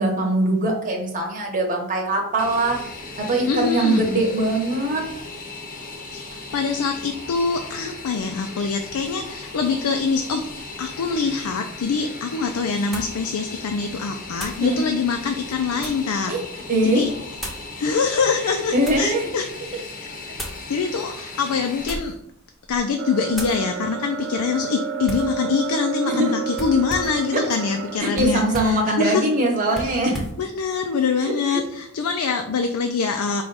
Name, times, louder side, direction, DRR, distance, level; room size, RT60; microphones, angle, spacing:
voice 1, 0.0-2.8 3.2-5.1 14.6-14.8 16.3-16.4 16.7-17.0 18.7-19.3 26.1-26.4 27.3-27.4 28.0-30.2 31.2-31.6, right 1 dB, 35° right, 0 dB, 1.0 m, -22 dB
Fixed-wing aircraft airplane, 2.4-21.9, left 3 dB, 40° left, 0.7 m, -37 dB
voice 2, 3.5-4.1 6.1-6.2 6.5-10.5 10.8-16.3 16.8-17.1 17.8-19.4 20.7-22.1 22.7-29.3 29.7-30.1 30.4-33.4, left 5 dB, 80° left, 5 dB, 0.4 m, -24 dB
sound 1, 12.9-13.2 14.3-14.7 15.4-16.1 17.4-17.7 18.4-19.1 20.3-20.6 21.7-22.2 22.6-22.9 23.3-23.6 25.0-25.3 26.5-27.2 28.1-28.8 29.7-30.4, equal, ahead, 0.7 m, -35 dB
sound 2, 23.0-28.0, right 8 dB, 60° right, 0.3 m, -31 dB
4.8 x 2.3 x 3.9 m, 0.76 s
head